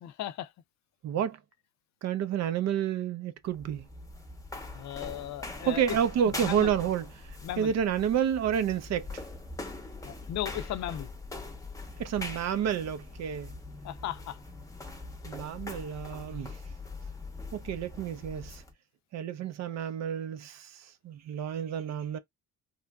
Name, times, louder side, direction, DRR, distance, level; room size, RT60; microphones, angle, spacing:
voice 1, 0.0-0.5 4.7-6.0 6.4-6.7 7.4-7.7 10.0-11.1 13.8-14.4, left 12 dB, 65° left, 0.5 m, -36 dB
voice 2, 1.0-1.4 2.0-3.9 5.6-9.2 12.0-13.5 15.2-16.6 17.5-18.6 19.1-22.2, right 9 dB, 60° right, 0.5 m, -30 dB
sound 1, 3.4-18.7, left 2 dB, 10° left, 0.7 m, -42 dB
3.0 x 2.5 x 2.2 m
cardioid pair, 90°, 30 cm